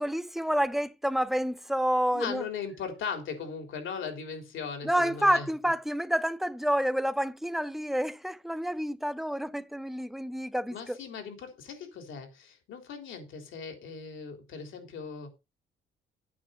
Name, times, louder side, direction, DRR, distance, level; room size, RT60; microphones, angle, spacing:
voice 1, 0.0-2.4 4.8-11.0, equal, ahead, 0.7 m, -29 dB
voice 2, 2.1-5.5 10.7-15.3, left 6 dB, 80° left, 3.5 m, -38 dB
8.6 x 5.3 x 7.6 m
cardioid pair, 90°, 20 cm